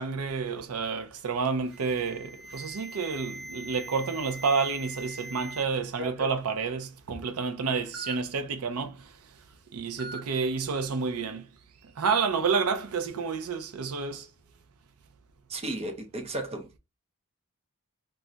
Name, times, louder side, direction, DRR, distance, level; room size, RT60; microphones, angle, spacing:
voice 1, 0.0-9.2 9.7-11.5 11.8-14.3, right 5 dB, 85° right, 0.5 m, -29 dB
Alarm, 1.7-5.6 6.0-6.4 7.2-7.3 7.9-8.1 10.0-10.2 12.0-12.2, right 1 dB, 60° right, 0.8 m, -41 dB
voice 2, 15.5-16.8, right 1 dB, 30° right, 0.6 m, -34 dB
2.4 x 2.1 x 3.8 m
head